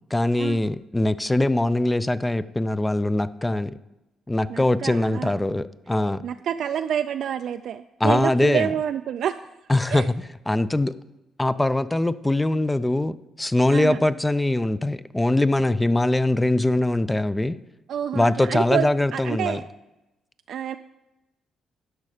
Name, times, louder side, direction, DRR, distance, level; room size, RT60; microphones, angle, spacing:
voice 1, 0.1-3.8 4.3-6.3 8.0-8.7 9.7-10.2 10.5-10.9 11.4-17.6 18.1-19.6, left 1 dB, 10° left, 15 dB, 0.4 m, -22 dB
voice 2, 4.5-5.3 6.2-9.4 9.9-10.1 13.7-14.0 17.9-19.6 20.5-20.8, right 9 dB, 70° right, 7 dB, 0.3 m, -28 dB
11.0 x 6.3 x 4.9 m, 0.98 s
cardioid pair, 90°, 0 cm